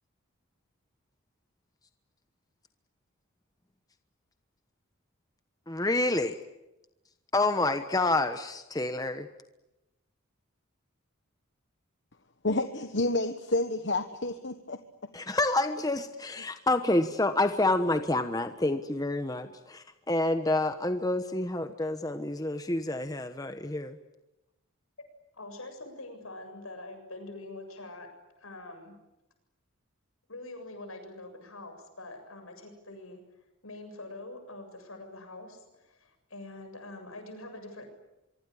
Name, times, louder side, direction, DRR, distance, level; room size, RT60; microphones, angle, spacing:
voice 1, 5.7-6.4 7.3-9.3 15.1-24.0, left 2 dB, 15° left, 8 dB, 1.1 m, -28 dB
voice 2, 12.4-14.8, left 2 dB, 55° left, 8 dB, 1.3 m, -29 dB
voice 3, 25.3-28.1 28.4-29.0 30.3-33.2 33.6-37.9, left 2 dB, 80° left, 6 dB, 7.4 m, -44 dB
24.5 x 24.5 x 10.0 m, 0.95 s
head